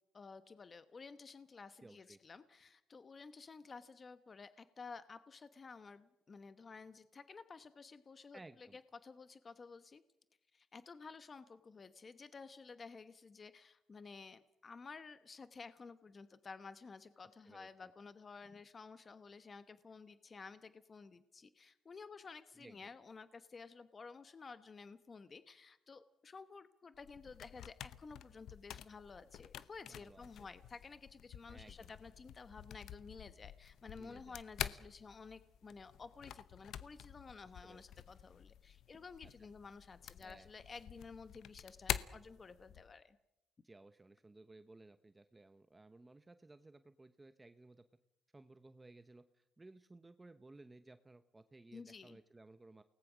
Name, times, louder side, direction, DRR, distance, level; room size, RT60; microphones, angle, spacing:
voice 1, 0.1-10.0 10.5-43.2 51.7-52.2, left 4 dB, 35° left, 12 dB, 1.0 m, -53 dB
voice 2, 1.8-2.2 8.3-8.8 17.4-17.9 22.6-22.9 29.9-30.5 31.5-31.9 34.0-34.4 37.6-38.0 39.4-39.5 40.2-40.5 43.6-47.8 48.3-52.8, right 2 dB, 20° right, 11 dB, 0.9 m, -59 dB
sound 1, 26.9-42.9, left 10 dB, 75° left, 0.8 m, -48 dB
29.0 x 19.0 x 6.2 m, 0.89 s
cardioid pair, 90°, 0 cm